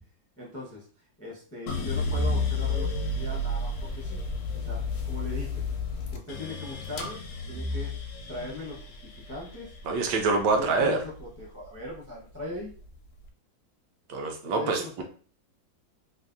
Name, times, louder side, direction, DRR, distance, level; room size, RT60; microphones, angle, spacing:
voice 1, 0.4-0.9 1.2-4.2 4.5-5.6 6.1-7.2 7.5-7.9 8.3-9.7 10.6-12.7 14.4-15.0, left 2 dB, 20° left, -5 dB, 0.4 m, -40 dB
sound 1, 1.7-11.9 12.3-13.1, left 3 dB, 70° left, 0.9 m, -32 dB
voice 2, 9.9-11.0 14.1-15.0, right 3 dB, 75° right, 3 dB, 1.2 m, -25 dB
3.2 x 2.5 x 2.6 m, 0.41 s
omnidirectional pair, 1.9 m